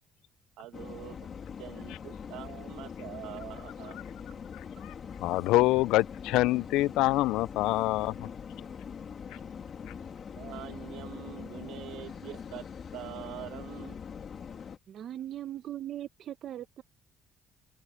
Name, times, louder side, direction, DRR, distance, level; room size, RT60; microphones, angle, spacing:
voice 1, 0.6-1.3 1.6-4.0 9.3-9.4 10.0-12.7 12.9-14.0, right 15 dB, 85° right, 1.5 m, -44 dB
sound 1, 0.7-14.8, left 7 dB, 35° left, 2.4 m, -43 dB
voice 2, 5.2-8.1, left 18 dB, 85° left, 0.4 m, -25 dB
voice 3, 14.9-16.8, right 12 dB, 45° right, 1.0 m, -39 dB
cardioid pair, 155°, 0 cm